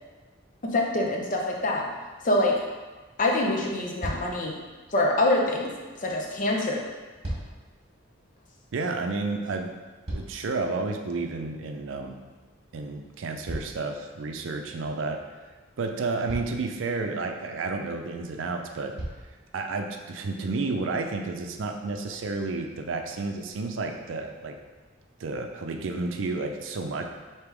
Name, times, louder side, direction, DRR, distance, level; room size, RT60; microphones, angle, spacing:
voice 1, 0.6-1.8 2.2-2.6 3.2-4.6 4.9-5.7 6.0-6.8, left 2 dB, 45° left, -1 dB, 0.6 m, -25 dB
sound 1, 4.0-4.5 6.9-7.7 9.6-10.7 13.4-14.4 15.6-15.7 16.2-16.7 18.1-18.2 18.9-19.4 20.2-20.3, right 1 dB, 35° right, 1.4 m, -37 dB
voice 2, 8.7-9.7 10.1-12.2 12.7-15.2 15.8-18.9 19.5-24.6 25.2-27.0, right 3 dB, 90° right, 4 dB, 0.5 m, -31 dB
3.5 x 2.8 x 4.6 m, 1.3 s
head